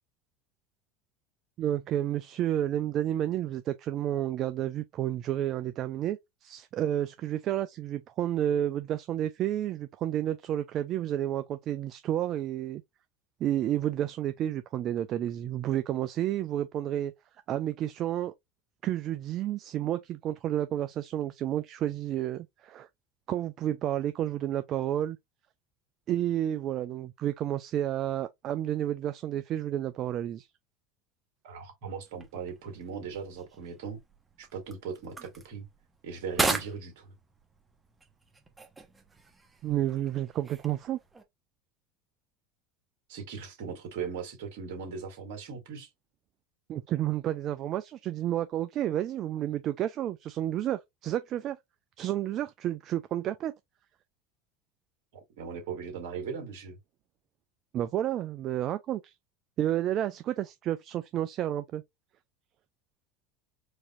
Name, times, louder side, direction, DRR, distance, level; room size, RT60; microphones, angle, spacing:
voice 1, 1.6-12.8 13.4-17.1 17.5-18.3 18.8-22.9 23.3-25.2 26.1-30.5 39.6-41.0 46.7-51.6 52.0-53.5 57.7-59.1 59.6-61.8, right 12 dB, 45° right, 0.3 m, -31 dB
voice 2, 31.4-34.0 34.4-35.7 36.0-37.2 43.1-45.9 55.4-56.8, right 6 dB, 65° right, 1.8 m, -38 dB
sound 1, 32.0-41.2, right 3 dB, 15° right, 1.0 m, -38 dB
4.6 x 2.8 x 2.5 m
hypercardioid pair, 75°, 0 cm